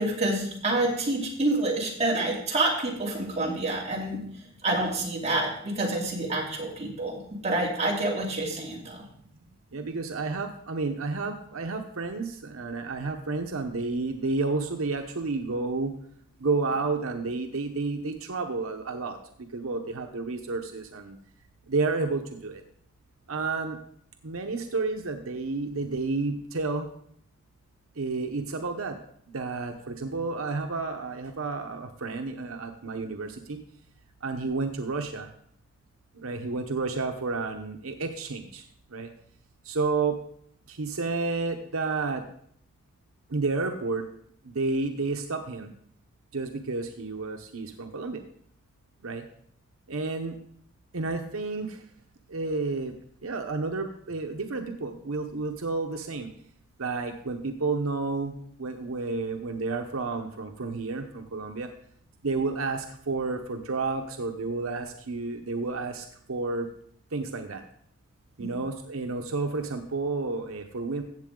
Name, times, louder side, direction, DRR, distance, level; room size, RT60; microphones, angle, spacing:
voice 1, 0.0-4.2 4.6-9.0 68.4-68.5, right 2 dB, 30° right, -3 dB, 2.9 m, -28 dB
voice 2, 9.7-15.9 16.4-19.2 19.5-21.2 21.7-22.6 23.3-23.8 24.2-26.9 28.0-29.0 29.3-33.6 34.2-35.3 36.2-38.6 38.9-39.1 39.7-40.2 40.7-42.2 43.3-44.0 44.5-45.7 46.3-48.2 49.0-49.2 49.9-50.3 50.9-51.8 52.3-52.9 53.2-56.3 56.8-58.3 58.6-61.7 62.2-66.7 67.1-67.6 68.4-71.0, right 3 dB, 85° right, 4 dB, 0.9 m, -31 dB
15.0 x 7.7 x 3.8 m, 0.65 s
head